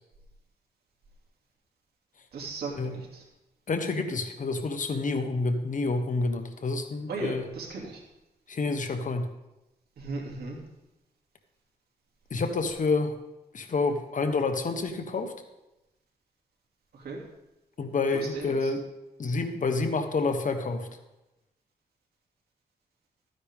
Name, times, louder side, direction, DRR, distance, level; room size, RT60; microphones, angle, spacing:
voice 1, 2.3-3.2 7.1-8.0 10.0-10.6 16.9-17.2 18.1-18.7, right 3 dB, 85° right, -2 dB, 2.8 m, -36 dB
voice 2, 3.7-7.4 8.5-9.3 12.3-13.1 13.5-15.3 17.8-18.8 19.2-20.9, left 3 dB, 55° left, 6 dB, 1.3 m, -28 dB
13.5 x 9.6 x 3.7 m, 0.95 s
cardioid pair, 80°, 16 cm